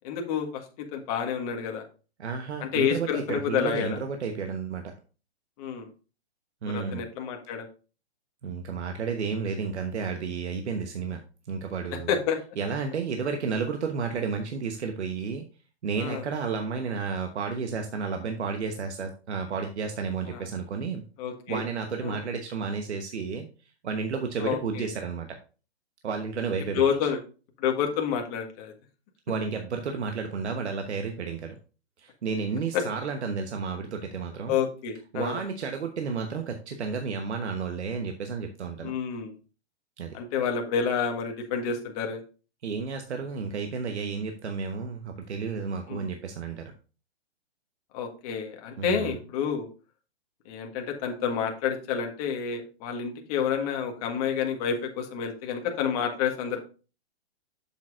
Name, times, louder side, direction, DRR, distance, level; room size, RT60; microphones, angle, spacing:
voice 1, 0.0-0.6 0.9-1.8 2.6-4.0 5.6-5.9 6.6-7.7 12.1-12.4 16.0-16.2 20.3-20.5 21.2-21.6 22.0-22.2 24.4-24.9 26.7-27.2 27.6-28.7 32.7-32.8 34.5-35.4 38.8-39.3 40.1-42.2 45.9-46.1 47.9-49.7 50.4-56.6, left 7 dB, 35° left, 3 dB, 1.6 m, -29 dB
voice 2, 2.2-4.9 6.6-7.1 8.4-11.2 11.5-12.1 12.6-15.5 15.8-21.0 21.5-23.5 23.8-25.4 26.0-26.8 29.3-31.5 32.0-34.6 35.1-38.9 40.0-40.2 42.6-46.7 48.8-49.2, right 5 dB, 80° right, 5 dB, 1.2 m, -32 dB
7.7 x 7.2 x 2.6 m, 0.35 s
hypercardioid pair, 145°, 33 cm